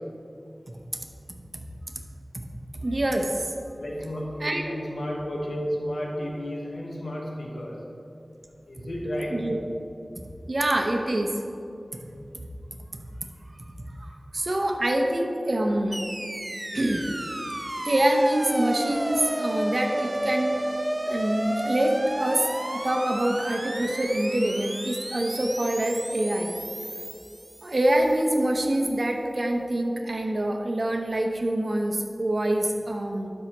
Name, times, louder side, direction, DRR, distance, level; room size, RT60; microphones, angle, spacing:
voice 1, 2.8-3.5 4.4-4.7 9.3-9.6 10.5-11.3 14.0-16.0 16.7-17.0 17.8-20.6 21.1-22.4 22.7-26.5 27.6-33.3, right 1 dB, 55° right, 3 dB, 0.8 m, -25 dB
voice 2, 3.8-7.8 8.7-9.4, equal, 90° left, -2 dB, 1.2 m, -32 dB
sound 1, 15.9-28.2, right 1 dB, 25° right, 0.4 m, -32 dB
12.0 x 5.5 x 3.0 m, 2.6 s
wide cardioid pair, 60°, 0 cm